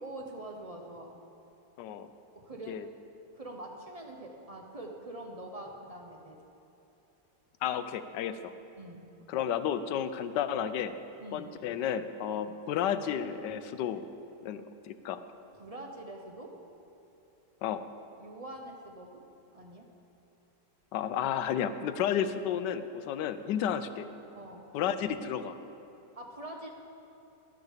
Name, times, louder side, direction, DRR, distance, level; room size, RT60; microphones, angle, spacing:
voice 1, 0.0-1.1 2.3-2.8 3.3-6.4 8.8-9.1 11.2-11.5 15.5-16.6 18.2-19.2 19.5-19.9 24.3-24.7 26.1-26.7, right 1 dB, 40° right, 1 dB, 0.5 m, -44 dB
voice 2, 7.6-8.4 9.3-10.9 11.3-14.0 14.4-15.2 17.6-17.8 20.9-24.1 24.7-25.5, left 9 dB, 85° left, 11 dB, 1.2 m, -32 dB
11.5 x 6.6 x 7.3 m, 2.9 s
omnidirectional pair, 1.8 m